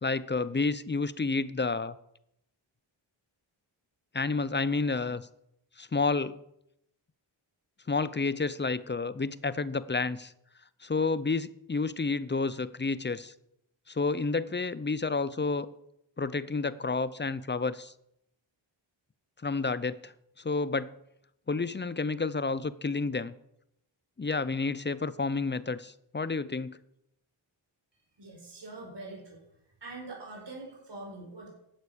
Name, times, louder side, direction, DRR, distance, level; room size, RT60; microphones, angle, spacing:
voice 1, 0.0-1.9 4.1-5.2 5.8-6.4 7.9-10.3 10.8-13.3 13.9-15.7 16.2-17.9 19.4-20.1 20.4-20.9 21.5-23.3 24.2-26.8, left 4 dB, 20° left, 17 dB, 0.7 m, -30 dB
voice 2, 28.2-29.4 29.8-31.5, right 2 dB, 55° right, -1 dB, 5.1 m, -43 dB
12.0 x 8.2 x 7.0 m, 0.78 s
cardioid pair, 65°, 49 cm